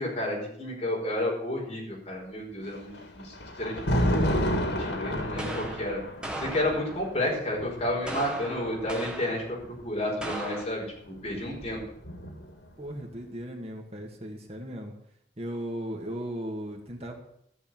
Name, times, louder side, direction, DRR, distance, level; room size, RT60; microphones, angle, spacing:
voice 1, 0.0-4.4 4.7-6.0 6.4-9.4 9.8-11.8, left 1 dB, 35° left, -2 dB, 5.0 m, -31 dB
Thunder, 2.6-9.8 10.9-12.6, equal, 80° left, 2.5 m, -31 dB
sound 1, 5.4-7.2 8.1-9.5 10.2-10.7, right 1 dB, 5° right, 1.5 m, -37 dB
voice 2, 12.8-14.9 15.4-17.2, equal, 35° right, 2 dB, 2.1 m, -36 dB
14.0 x 6.8 x 9.3 m, 0.70 s
head